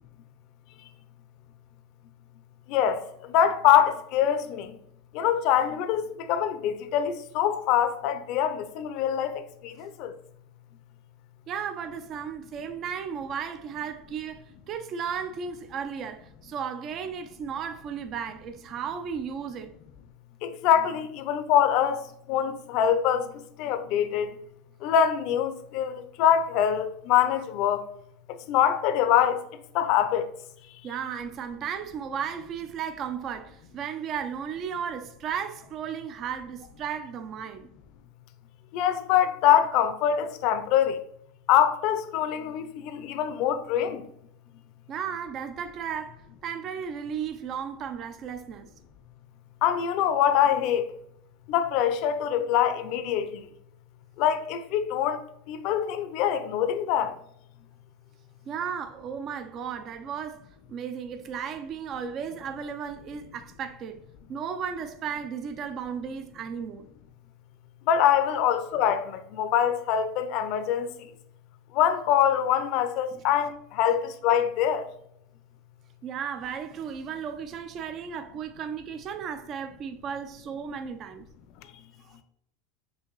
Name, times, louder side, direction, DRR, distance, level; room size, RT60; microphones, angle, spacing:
voice 1, 2.7-3.0 3.3-4.7 5.1-6.0 6.3-10.1 20.4-23.3 23.6-24.3 24.8-27.8 28.5-29.4 29.7-30.2 38.7-41.0 41.5-44.0 49.6-50.8 51.5-53.4 54.2-55.2 55.5-57.1 67.9-70.9 71.7-74.9, left 9 dB, 55° left, 0.5 m, -24 dB
voice 2, 11.5-19.7 30.8-37.7 44.9-48.7 58.5-64.0 64.3-66.8 68.3-68.4 76.0-81.3, right 7 dB, 40° right, 0.4 m, -35 dB
6.0 x 2.6 x 3.0 m
supercardioid pair, 130°, 0 cm